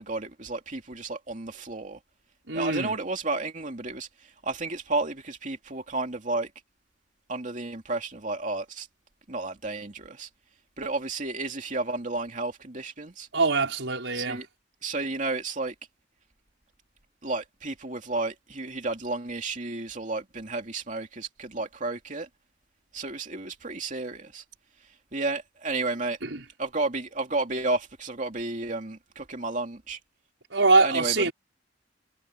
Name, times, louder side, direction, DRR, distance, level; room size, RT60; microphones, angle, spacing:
voice 1, 0.0-2.0 2.5-6.5 7.3-8.9 9.3-10.3 10.8-13.3 14.1-14.5 14.8-15.7 17.2-22.3 22.9-24.4 25.1-26.2 26.6-30.0 30.8-31.3, right 3 dB, 45° right, 2.7 m, -32 dB
voice 2, 2.5-3.0 13.3-14.4 26.2-26.4 30.5-31.3, right 3 dB, 80° right, 5.2 m, -23 dB
head